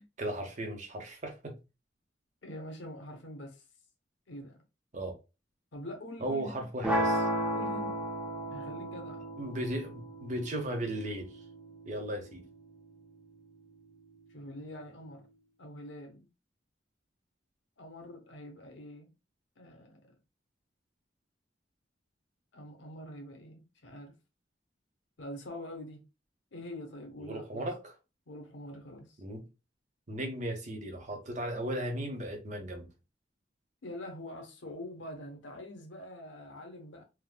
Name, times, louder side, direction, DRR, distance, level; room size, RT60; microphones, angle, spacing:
voice 1, 0.0-1.6 4.9-5.2 6.2-7.3 9.4-11.3 11.8-12.4 27.2-27.9 29.2-29.4 30.1-32.9, right 1 dB, 45° right, 0.8 m, -36 dB
voice 2, 2.4-3.6 4.3-4.6 5.7-6.6 7.5-8.0 8.5-9.2 14.3-15.3 15.6-16.3 17.8-19.1 19.6-20.2 22.5-24.1 25.2-26.0 26.5-27.7 28.3-29.2 33.8-37.0, left 1 dB, 85° left, 0.8 m, -45 dB
sound 1, 6.8-12.9, equal, 5° right, 0.5 m, -34 dB
3.5 x 2.2 x 2.2 m
head